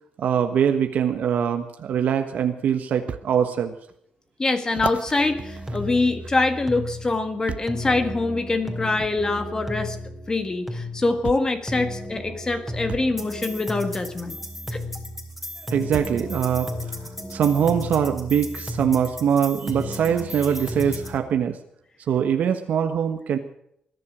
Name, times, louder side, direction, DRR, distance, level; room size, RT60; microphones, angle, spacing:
voice 1, 0.2-3.7 15.7-17.0 17.3-21.6 22.1-23.4, right 8 dB, 70° right, 6 dB, 1.3 m, -23 dB
sound 1, 3.1-3.3 3.9-4.0 4.7-6.6 7.5-7.8 9.0-9.2 10.4-10.5 11.2-11.6 12.9-13.1 14.8-14.9 15.9-16.3 17.1-17.2, right 7 dB, 50° right, 0.9 m, -35 dB
voice 2, 4.4-10.0 10.3-14.4 14.7-14.8, left 3 dB, 25° left, 8 dB, 1.7 m, -24 dB
sound 2, 5.2-21.2, left 1 dB, ahead, 3.4 m, -34 dB
21.0 x 11.0 x 6.2 m, 0.75 s
cardioid pair, 120°, 3 cm